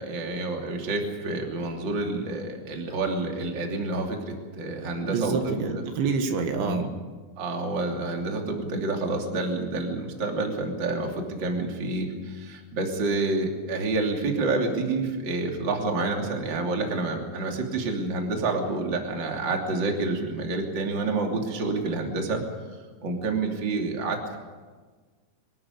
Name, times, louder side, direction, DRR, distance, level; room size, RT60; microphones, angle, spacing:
voice 1, 0.0-5.8 6.5-6.9 7.4-22.4 23.0-24.4, right 3 dB, 30° right, 1 dB, 2.8 m, -28 dB
voice 2, 5.0-6.9, right 5 dB, 75° right, 5 dB, 3.9 m, -27 dB
24.0 x 13.5 x 9.8 m, 1.4 s
omnidirectional pair, 5.4 m